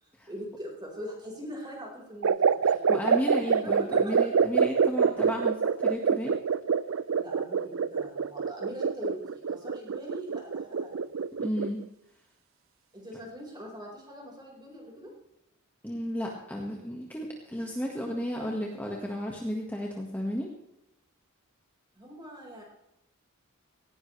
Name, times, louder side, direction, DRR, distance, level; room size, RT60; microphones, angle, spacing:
voice 1, 0.0-4.5 7.2-11.1 12.9-15.1 21.9-22.6, equal, 20° right, -1 dB, 4.7 m, -42 dB
sound 1, 2.2-11.8, right 6 dB, 70° right, 0.5 m, -26 dB
voice 2, 2.6-6.4 11.4-11.8 15.8-20.5, equal, 10° left, -1 dB, 1.6 m, -33 dB
18.0 x 17.0 x 3.3 m, 0.87 s
head